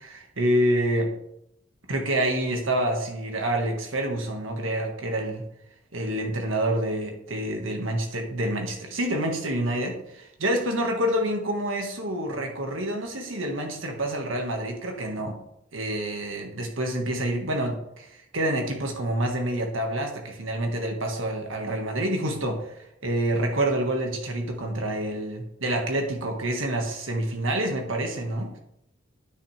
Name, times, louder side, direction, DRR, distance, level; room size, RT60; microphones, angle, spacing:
voice 1, 0.1-1.1 1.9-5.4 5.9-15.4 15.7-28.5, right 1 dB, 80° right, 3 dB, 1.7 m, -27 dB
9.6 x 6.5 x 3.4 m, 0.79 s
head